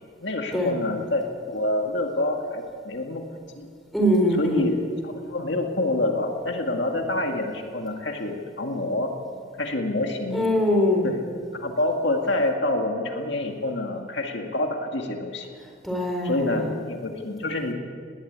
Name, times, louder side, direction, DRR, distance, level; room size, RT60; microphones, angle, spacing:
voice 1, 0.2-3.3 3.6-3.7 4.4-4.7 5.0-9.2 9.6-10.5 11.0-11.2 11.5-15.5 16.2-17.7, left 2 dB, 60° left, 3 dB, 2.0 m, -27 dB
voice 2, 3.9-4.7 10.3-11.1 15.8-16.7, equal, ahead, 0 dB, 4.0 m, -22 dB
19.5 x 19.0 x 8.8 m, 2.2 s
head